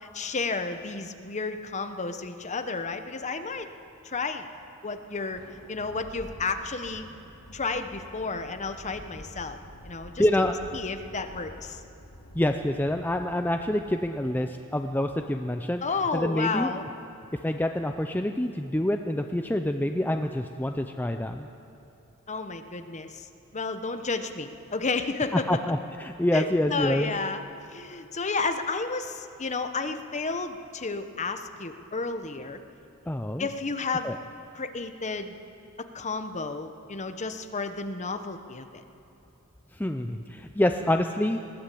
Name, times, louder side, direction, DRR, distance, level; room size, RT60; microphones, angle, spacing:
voice 1, 0.0-3.7 4.0-4.5 4.8-5.4 5.7-7.0 7.5-9.6 9.8-11.8 15.8-16.8 22.3-23.3 23.5-25.6 26.3-27.4 27.7-32.6 33.4-34.1 34.5-35.3 35.8-38.8, left 4 dB, 30° left, 8 dB, 1.0 m, -32 dB
Thunder, 5.1-15.5, equal, 80° left, 3.3 m, -48 dB
voice 2, 10.2-10.6 12.4-15.8 16.1-16.7 17.4-21.5 25.3-27.1 33.1-33.5 34.0-34.2 39.7-41.4, left 1 dB, 10° left, 5 dB, 0.5 m, -27 dB
20.5 x 16.0 x 8.5 m, 2.7 s
head